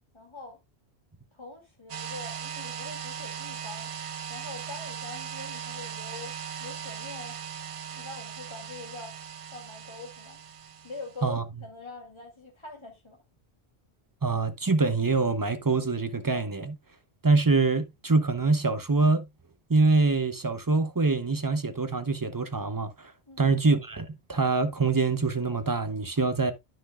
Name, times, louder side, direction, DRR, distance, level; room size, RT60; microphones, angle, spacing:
voice 1, 0.1-0.6 1.3-3.9 4.3-7.4 7.9-9.2 9.5-10.4 10.8-13.2 23.3-23.6, left 3 dB, 25° left, 2.3 m, -44 dB
sound 1, 1.9-11.3, right 8 dB, 60° right, 0.3 m, -39 dB
voice 2, 14.2-16.8 17.2-19.3 19.7-22.9 23.4-26.5, right 3 dB, 20° right, 0.7 m, -25 dB
10.0 x 6.2 x 2.3 m
omnidirectional pair, 1.1 m